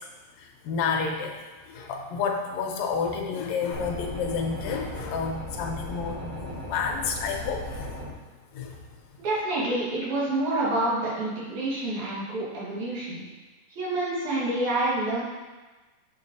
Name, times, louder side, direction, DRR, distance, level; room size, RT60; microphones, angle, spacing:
voice 1, 0.6-1.3 1.7-7.9 8.5-8.8, left 5 dB, 80° left, 1 dB, 1.9 m, -30 dB
sound 1, 3.7-8.1, left 1 dB, 60° right, 0.9 m, -37 dB
voice 2, 9.2-13.2 13.7-15.2, right 2 dB, 80° right, -7 dB, 3.1 m, -28 dB
7.1 x 5.9 x 2.7 m, 1.3 s
omnidirectional pair, 3.3 m